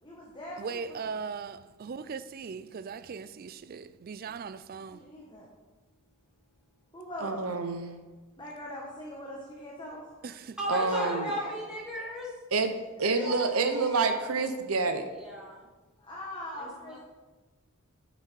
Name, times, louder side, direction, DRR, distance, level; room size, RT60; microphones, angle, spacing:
voice 1, 0.0-1.1 4.7-5.5 6.9-7.4 8.4-10.0 10.9-11.5 13.1-14.2 16.0-17.0, left 1 dB, 20° left, 1.3 m, -40 dB
voice 2, 0.6-5.0 10.2-10.6, right 5 dB, 45° right, 0.4 m, -39 dB
voice 3, 7.2-7.9 10.7-11.3 12.5-15.0, right 4 dB, 90° right, 0.9 m, -28 dB
voice 4, 10.6-12.3 15.2-15.5 16.6-16.7, equal, 5° right, 2.8 m, -34 dB
9.8 x 6.0 x 4.6 m
head